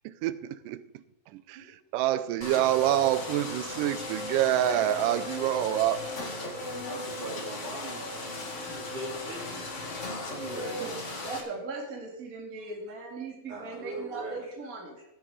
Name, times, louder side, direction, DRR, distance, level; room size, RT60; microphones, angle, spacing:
voice 1, 0.1-1.0 1.3-6.0, right 13 dB, 80° right, 14 dB, 2.1 m, -27 dB
sound 1, 2.4-11.4, left 2 dB, 55° left, 0.8 m, -36 dB
voice 2, 6.8-9.7 10.2-11.1 11.5-11.6 12.6-12.7 13.5-14.5 15.0-15.1, right 2 dB, 60° right, -4 dB, 5.1 m, -41 dB
voice 3, 11.2-15.0, right 3 dB, 30° right, -1 dB, 1.8 m, -39 dB
16.5 x 6.5 x 4.9 m, 0.89 s
omnidirectional pair, 4.0 m